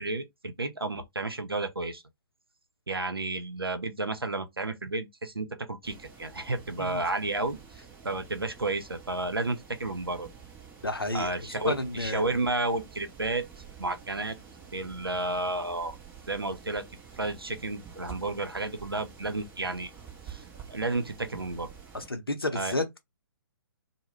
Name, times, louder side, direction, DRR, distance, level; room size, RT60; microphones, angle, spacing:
voice 1, 0.0-2.0 2.9-7.6 8.0-10.3 11.1-13.5 13.8-14.4 14.7-15.9 16.3-16.8 17.2-19.9 20.3-20.4 20.7-21.7 22.5-22.7, right 2 dB, 85° right, 0.5 m, -31 dB
sound 1, 5.8-22.1, right 6 dB, 15° right, 0.6 m, -49 dB
voice 2, 10.8-12.4 21.9-23.0, left 2 dB, 85° left, 0.6 m, -32 dB
2.2 x 2.1 x 3.2 m
figure-of-eight pair, 130°, 12 cm